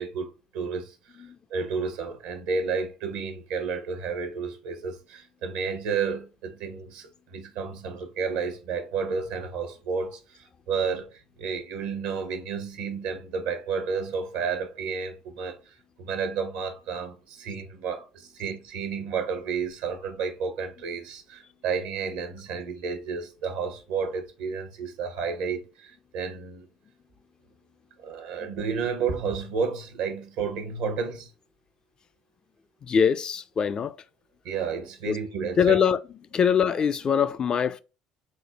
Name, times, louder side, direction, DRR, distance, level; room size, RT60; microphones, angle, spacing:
voice 1, 0.0-26.7 28.0-31.3 34.4-35.8, right 5 dB, 70° right, 0.8 m, -31 dB
voice 2, 32.8-34.0 35.1-35.2 35.6-36.0 36.3-37.8, left 7 dB, 35° left, 0.3 m, -23 dB
4.3 x 2.2 x 3.2 m
hypercardioid pair, 70°, 2 cm